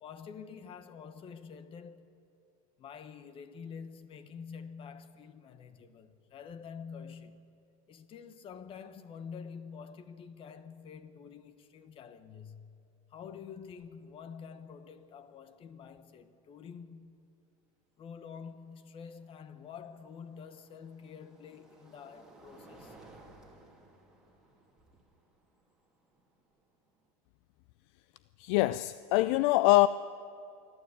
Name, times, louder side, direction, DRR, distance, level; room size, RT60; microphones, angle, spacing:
voice 1, 0.0-2.0 2.8-7.5 7.9-17.2 18.0-23.0, left 6 dB, 30° left, 1.2 m, -47 dB
sound 1, 13.2-13.3 13.6-14.1 15.9-16.0 19.0-27.1, right 2 dB, 5° right, 3.0 m, -59 dB
voice 2, 28.4-29.9, left 19 dB, 55° left, 0.4 m, -24 dB
26.5 x 12.0 x 8.4 m
supercardioid pair, 140°, 18 cm